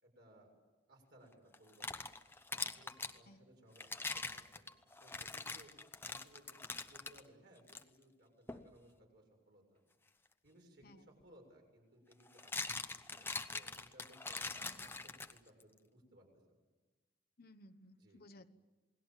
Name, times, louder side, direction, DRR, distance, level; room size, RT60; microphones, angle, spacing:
voice 1, 0.0-0.5 0.9-2.0 2.5-4.7 5.0-5.7 6.0-9.8 10.4-16.3 18.0-18.2, right 1 dB, 60° right, 1 dB, 7.2 m, -63 dB
sound 1, 1.5-3.2 3.8-7.2 7.7-7.8 8.5-8.7 10.8-10.9 12.1-15.6, left 3 dB, 10° left, 0.9 m, -43 dB
voice 2, 14.6-14.9 17.4-18.4, left 1 dB, 55° left, 11 dB, 1.1 m, -59 dB
28.5 x 19.5 x 7.5 m, 1.3 s
head